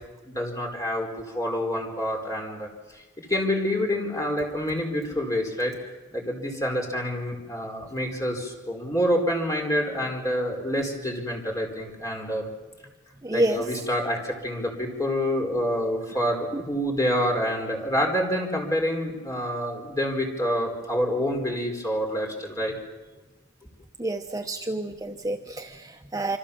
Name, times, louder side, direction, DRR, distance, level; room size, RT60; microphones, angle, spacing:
voice 1, 0.2-1.1 1.3-5.7 6.1-12.5 13.3-22.7, equal, 15° left, 1 dB, 4.5 m, -27 dB
voice 2, 13.2-13.6 24.0-26.4, right 1 dB, 20° right, 4 dB, 1.0 m, -28 dB
27.0 x 25.5 x 7.2 m, 1.2 s
head